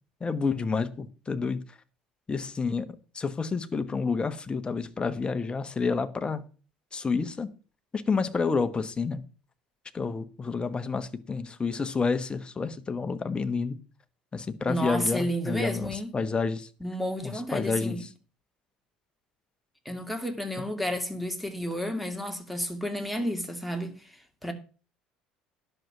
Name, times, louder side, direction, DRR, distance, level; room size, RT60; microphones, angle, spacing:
voice 1, 0.2-1.6 2.3-2.9 3.1-6.4 6.9-7.5 7.9-9.2 9.9-13.8 14.3-16.7 17.2-18.0, left 4 dB, 25° left, 1.3 m, -29 dB
voice 2, 14.7-16.1 16.8-18.0 19.8-24.5, equal, ahead, 2.4 m, -31 dB
10.5 x 6.8 x 5.9 m
hypercardioid pair, 70°, 4 cm